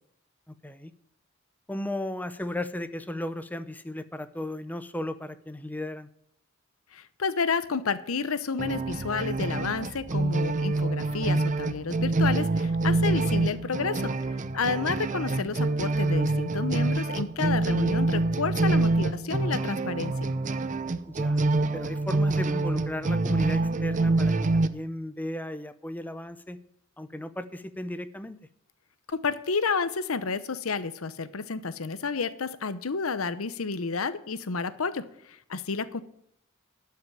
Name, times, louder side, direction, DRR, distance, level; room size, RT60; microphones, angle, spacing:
voice 1, 1.7-6.1 14.8-15.0 21.1-21.4 21.7-26.6 27.0-28.4, left 1 dB, 10° left, 12 dB, 0.7 m, -35 dB
voice 2, 6.9-20.3 29.1-36.0, left 4 dB, 90° left, 14 dB, 0.8 m, -30 dB
sound 1, 8.6-24.7, right 2 dB, 35° right, 0.6 m, -26 dB
12.5 x 5.8 x 9.1 m, 0.73 s
head